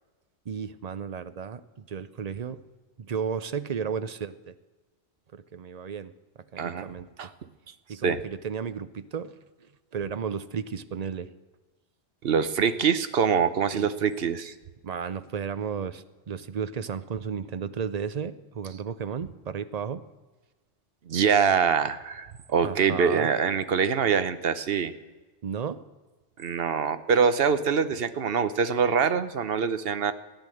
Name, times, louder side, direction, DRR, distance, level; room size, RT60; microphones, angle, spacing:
voice 1, 0.5-2.6 3.0-4.5 5.3-6.1 6.5-7.1 7.9-9.4 9.9-11.3 13.7-14.0 14.8-20.0 22.6-23.3 25.4-25.8, right 6 dB, 45° right, 13 dB, 0.6 m, -33 dB
voice 2, 12.2-14.5 21.1-24.9 26.4-30.1, right 6 dB, 65° right, 12 dB, 1.0 m, -24 dB
14.5 x 10.0 x 7.7 m, 1.2 s
omnidirectional pair, 1.1 m